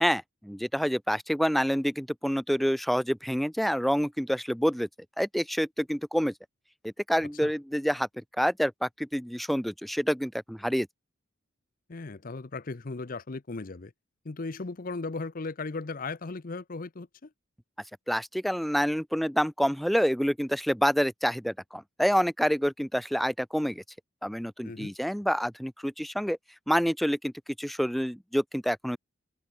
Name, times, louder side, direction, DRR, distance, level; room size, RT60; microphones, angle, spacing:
voice 1, 0.0-4.9 5.2-6.3 6.8-10.9 18.1-23.8 24.2-26.4 26.7-27.3 27.6-29.0, equal, ahead, 0.4 m, -27 dB
voice 2, 11.9-13.9 14.2-17.3 24.6-24.9, left 3 dB, 40° left, 0.7 m, -37 dB
head